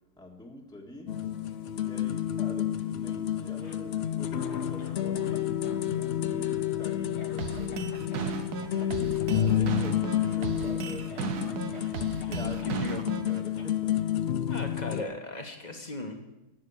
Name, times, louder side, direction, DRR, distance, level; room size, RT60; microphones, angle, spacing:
voice 1, 0.2-1.1 1.8-5.6 5.8-7.8 8.7-11.6 12.0-13.0 13.3-13.9, left 1 dB, 5° left, -1 dB, 1.7 m, -46 dB
sound 1, 1.1-15.0, left 10 dB, 65° left, 0.6 m, -30 dB
Cough, 3.5-5.4 5.6-8.3 8.6-8.8 9.2-9.4 9.7-10.2 10.6-10.7 11.1-12.8 13.6-13.7, left 3 dB, 45° left, 1.4 m, -50 dB
sound 2, 7.4-13.4, right 5 dB, 75° right, 1.5 m, -35 dB
voice 2, 12.3-13.0 14.5-16.3, left 2 dB, 25° left, 3 dB, 1.6 m, -37 dB
11.5 x 9.7 x 7.1 m, 0.99 s
omnidirectional pair, 1.7 m